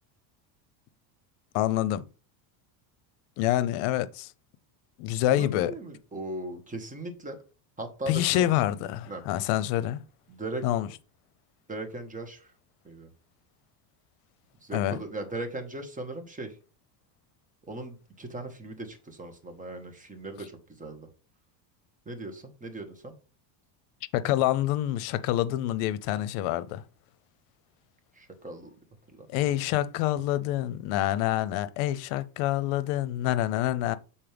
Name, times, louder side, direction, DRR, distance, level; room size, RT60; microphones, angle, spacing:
voice 1, 1.5-2.0 3.4-4.3 5.0-5.7 8.1-10.0 10.6-10.9 14.7-15.0 24.1-26.8 29.3-34.0, left 13 dB, 75° left, 0.7 m, -27 dB
voice 2, 5.3-7.4 7.8-8.5 9.1-9.2 10.3-10.6 11.7-12.5 12.8-13.1 14.6-16.5 17.7-20.5 20.8-21.1 22.0-23.1 28.2-28.7 29.1-29.3, right 2 dB, 15° right, 1.4 m, -38 dB
7.4 x 4.3 x 3.4 m
cardioid pair, 130°, 49 cm